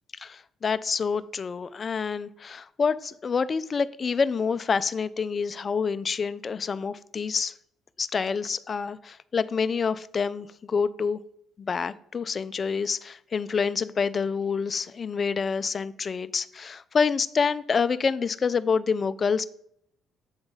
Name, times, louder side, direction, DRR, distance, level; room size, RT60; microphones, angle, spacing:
voice 1, 0.2-7.5 8.0-11.2 11.6-19.5, left 5 dB, 40° left, 14 dB, 0.3 m, -27 dB
7.0 x 3.8 x 5.4 m, 0.71 s
hypercardioid pair, 60°, 0 cm